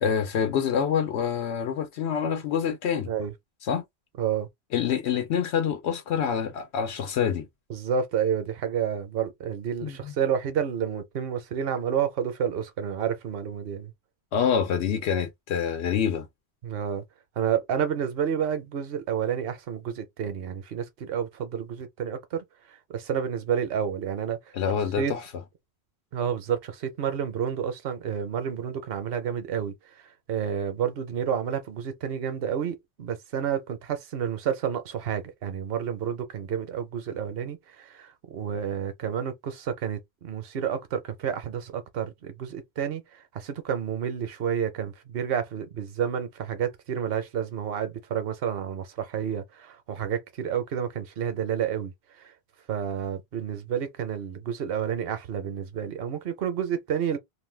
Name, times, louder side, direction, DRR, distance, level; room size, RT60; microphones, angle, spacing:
voice 1, 0.0-3.1 3.7-3.8 4.7-7.5 9.8-10.1 14.3-16.3 24.5-25.3, left 7 dB, 90° left, 0.9 m, -26 dB
voice 2, 4.2-4.5 7.7-13.9 16.6-17.0 17.4-22.4 22.9-24.4 25.0-25.1 26.1-29.7 30.3-43.0 43.3-51.9 52.2-52.3 52.7-57.2, right 8 dB, 65° right, 0.9 m, -30 dB
2.5 x 2.2 x 3.2 m
omnidirectional pair, 1.1 m